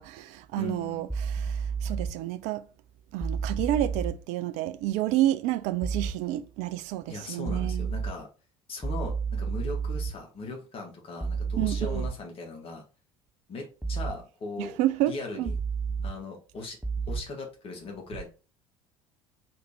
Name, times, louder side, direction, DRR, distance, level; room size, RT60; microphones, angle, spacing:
voice 1, 0.0-2.7 3.1-7.9 11.6-12.1 14.6-15.5, right 14 dB, 45° right, 0.4 m, -30 dB
voice 2, 0.6-1.1 7.1-8.3 8.7-12.8 13.5-14.8 15.1-15.6 16.0-16.8 17.1-18.3, left 3 dB, 35° left, 1.4 m, -39 dB
sound 1, 1.1-2.1 3.2-4.1 5.8-6.1 7.5-8.1 8.8-10.1 11.2-12.1 13.8-14.1 15.5-16.1 16.8-17.2, right 5 dB, 5° right, 0.6 m, -30 dB
3.3 x 3.3 x 3.1 m
figure-of-eight pair, 65°, 16 cm